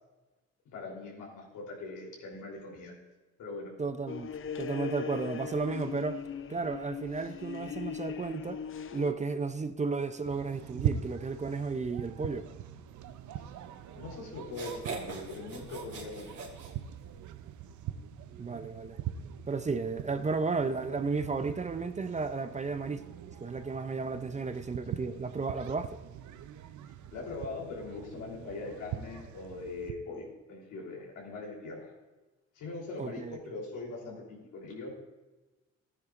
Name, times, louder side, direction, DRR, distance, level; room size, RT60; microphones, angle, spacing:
voice 1, 0.7-2.9 3.4-3.7 13.3-13.4 14.0-16.4 27.1-31.9 32.5-34.9, left 3 dB, 90° left, 3.6 m, -41 dB
voice 2, 3.8-6.2 6.5-8.6 8.9-12.5 18.4-19.0 19.5-23.0 23.4-26.0 33.0-33.4, right 4 dB, 25° right, 0.5 m, -33 dB
sound 1, 4.1-9.1, left 8 dB, 45° left, 0.6 m, -39 dB
sound 2, 10.2-29.9, right 10 dB, 75° right, 0.6 m, -42 dB
sound 3, 13.9-14.0 14.4-17.3, right 4 dB, 50° right, 2.5 m, -42 dB
13.5 x 9.7 x 2.5 m
cardioid pair, 90°, 30 cm